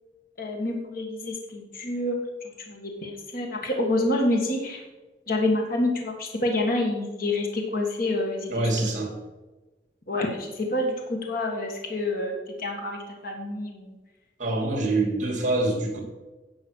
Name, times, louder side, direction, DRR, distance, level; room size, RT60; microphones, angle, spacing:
voice 1, 0.4-4.8 5.3-8.9 10.1-13.9, left 1 dB, 55° left, 2 dB, 1.7 m, -28 dB
voice 2, 8.5-9.1 14.4-16.0, right 2 dB, 45° right, 1 dB, 2.9 m, -25 dB
10.0 x 6.2 x 6.4 m, 1.1 s
head